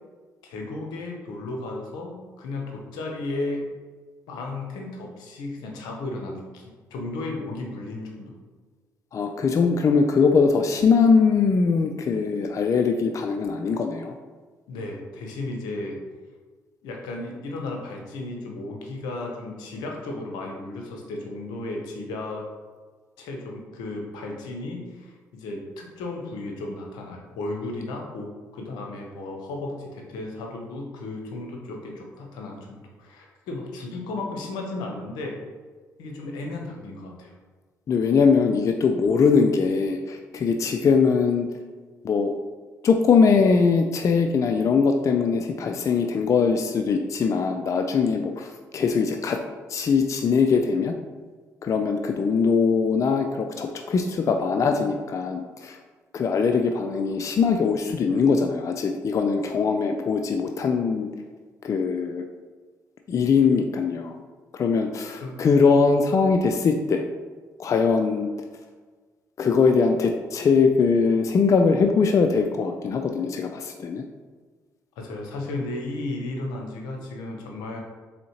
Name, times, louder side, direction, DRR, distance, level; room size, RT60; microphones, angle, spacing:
voice 1, 0.4-3.7 4.3-8.3 14.7-16.0 16.8-22.4 23.2-35.4 36.0-37.3 65.2-65.4 75.0-77.8, left 2 dB, 85° left, 1 dB, 0.7 m, -34 dB
voice 2, 9.1-14.1 37.9-41.5 42.0-42.3 42.8-49.4 49.7-50.9 51.6-55.8 56.1-61.1 61.6-62.2 63.1-64.2 64.5-67.0 67.6-68.3 69.4-74.0, left 5 dB, 50° left, 5 dB, 0.3 m, -21 dB
4.2 x 3.5 x 2.9 m, 1.4 s
supercardioid pair, 60°, 7 cm